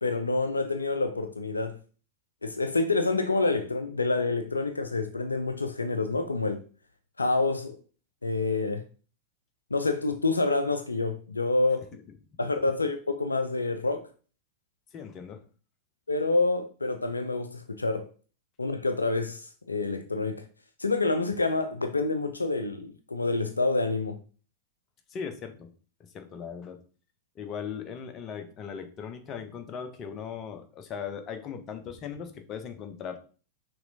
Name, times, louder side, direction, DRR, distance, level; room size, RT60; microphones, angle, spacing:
voice 1, 0.0-1.8 2.4-6.6 7.2-7.8 8.2-8.8 9.7-11.9 12.4-14.0 16.1-18.1 18.6-20.4 20.8-24.2, left 3 dB, 80° left, 0.4 m, -27 dB
voice 2, 14.9-15.4 25.1-25.7 26.0-26.8 27.4-33.2, left 7 dB, 30° left, 0.6 m, -38 dB
5.8 x 3.1 x 2.6 m
figure-of-eight pair, 90°, 0 cm